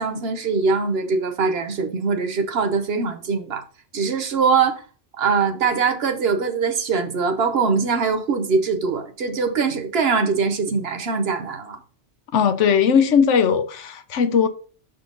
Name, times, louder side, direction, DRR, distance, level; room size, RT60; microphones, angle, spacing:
voice 1, 0.0-3.6 3.9-4.8 5.2-11.8, right 5 dB, 60° right, 1.0 m, -22 dB
voice 2, 12.3-14.5, left 6 dB, 85° left, 1.1 m, -18 dB
6.7 x 3.9 x 3.8 m
omnidirectional pair, 1.2 m